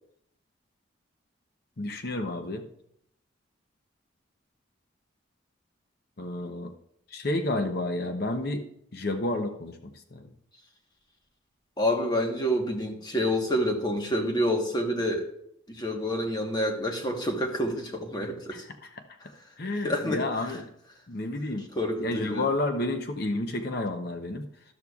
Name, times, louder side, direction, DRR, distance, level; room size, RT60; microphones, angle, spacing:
voice 1, 1.8-2.7 6.2-6.7 7.1-8.7 8.9-9.8 10.1-10.3 18.5-18.9 19.6-20.6 21.1-21.7 22.0-24.5, left 2 dB, 50° left, 6 dB, 0.8 m, -30 dB
voice 2, 11.8-15.3 15.7-18.6 19.8-20.6 21.7-22.5, equal, 20° left, 2 dB, 1.2 m, -28 dB
13.0 x 12.5 x 2.4 m, 0.73 s
head